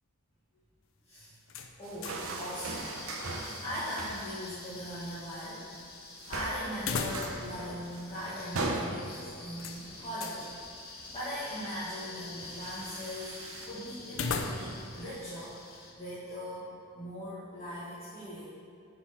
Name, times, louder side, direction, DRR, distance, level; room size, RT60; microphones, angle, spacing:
sound 1, 1.5-2.4 2.7-2.8 6.7-7.6 7.9-8.0 9.6-10.4 14.1-14.9, left 4 dB, 65° left, 0.6 m, -36 dB
voice 1, 1.8-3.0 3.6-5.6 5.9-6.0 6.3-10.5 10.8-18.5, equal, 30° left, -11 dB, 1.6 m, -40 dB
sound 2, 1.8-4.4 4.7-5.2 5.6-5.9 6.1-13.7, right 2 dB, 70° right, 0.9 m, -40 dB
sound 3, 2.6-15.9, left 3 dB, 45° left, 1.2 m, -48 dB
10.0 x 4.6 x 5.5 m, 2.5 s
head